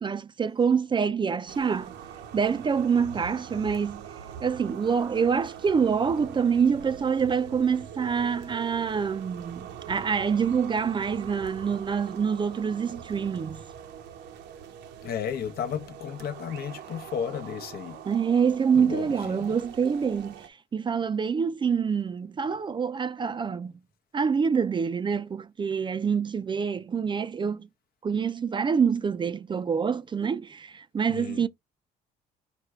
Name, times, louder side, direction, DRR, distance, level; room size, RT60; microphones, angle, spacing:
voice 1, 0.0-1.9 2.3-4.0 4.4-13.7 18.0-23.7 24.1-27.7 28.0-31.5, right 6 dB, 25° right, 0.4 m, -26 dB
sound 1, 1.5-20.5, right 8 dB, 80° right, 0.8 m, -43 dB
voice 2, 15.0-18.0 18.7-19.6 31.1-31.4, left 8 dB, 60° left, 0.8 m, -34 dB
5.1 x 2.2 x 4.7 m
cardioid pair, 95°, 17 cm